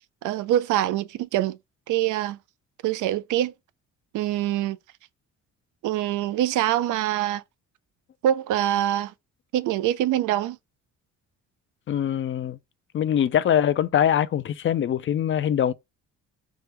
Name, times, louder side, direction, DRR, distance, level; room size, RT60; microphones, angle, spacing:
voice 1, 0.2-1.6 1.9-2.4 2.8-3.5 4.1-4.8 5.8-7.4 8.2-9.1 9.5-10.6, right 12 dB, 80° right, 0.5 m, -24 dB
voice 2, 11.9-12.6 12.9-15.7, left 9 dB, 45° left, 0.4 m, -23 dB
3.5 x 2.1 x 2.9 m
cardioid pair, 90°, 30 cm